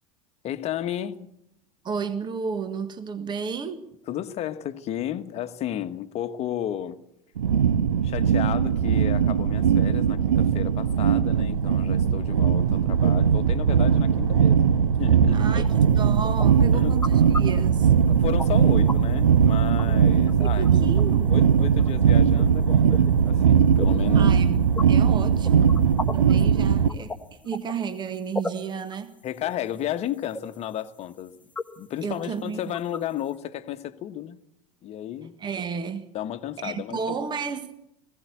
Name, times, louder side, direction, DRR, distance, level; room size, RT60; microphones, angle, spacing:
voice 1, 0.4-1.3 4.1-7.0 8.0-15.7 16.7-17.0 17.6-17.7 18.1-20.7 21.3-24.3 25.6-25.8 26.3-26.4 29.2-31.4 31.8-34.4 34.8-35.3 36.1-37.2, left 11 dB, 40° left, 1.3 m, -33 dB
voice 2, 1.8-3.9 15.3-17.9 20.4-21.4 24.1-24.6 24.9-25.8 26.1-29.2 32.0-32.6 35.4-36.1 36.6-37.7, right 6 dB, 25° right, 1.5 m, -32 dB
sound 1, 7.4-26.9, right 7 dB, 80° right, 0.8 m, -20 dB
sound 2, 15.6-18.9 19.3-20.7 20.9-21.0 21.4-22.0 22.4-22.5 22.8-23.1 23.7-23.9 24.3-26.3 26.9-27.1 27.5-28.0 28.3-33.3, left 3 dB, 10° left, 1.5 m, -35 dB
20.0 x 16.0 x 8.3 m
hypercardioid pair, 85°, 17 cm